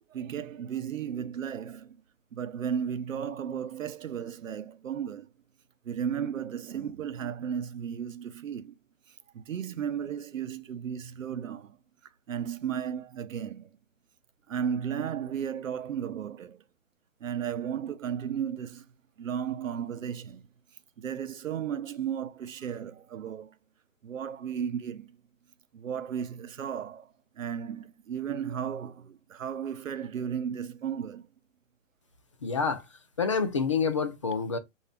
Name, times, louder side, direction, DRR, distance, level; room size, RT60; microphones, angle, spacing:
voice 1, 0.1-2.0 2.3-5.3 5.8-8.7 9.3-11.8 12.3-13.7 14.5-16.6 17.2-18.8 19.2-20.4 21.0-23.5 24.0-25.2 25.7-31.3, right 8 dB, 90° right, 0.7 m, -34 dB
voice 2, 32.4-32.8 33.2-34.6, left 5 dB, 25° left, 0.4 m, -27 dB
5.6 x 2.7 x 3.4 m
hypercardioid pair, 150°, 38 cm